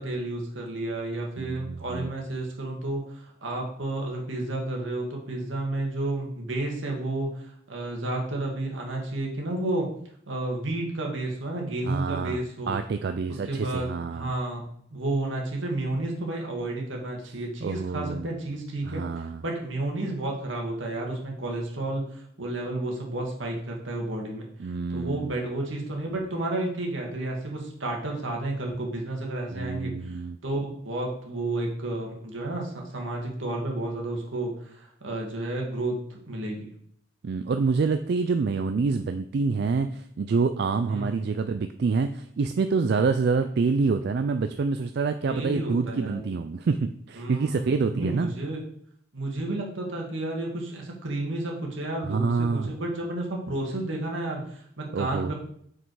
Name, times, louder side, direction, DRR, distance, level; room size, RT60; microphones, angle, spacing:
voice 1, 0.0-9.9 10.3-12.8 13.4-14.6 14.9-36.7 40.9-41.1 45.3-46.2 47.2-47.6 47.9-48.6 49.1-55.3, right 2 dB, 75° right, 0 dB, 1.9 m, -31 dB
voice 2, 1.4-2.1 11.9-12.4 12.7-14.3 17.6-18.2 18.8-19.4 24.6-25.3 29.5-30.4 37.2-48.3 52.1-52.7 54.9-55.3, right 4 dB, 55° right, 8 dB, 0.3 m, -27 dB
6.0 x 5.3 x 4.7 m, 0.66 s
head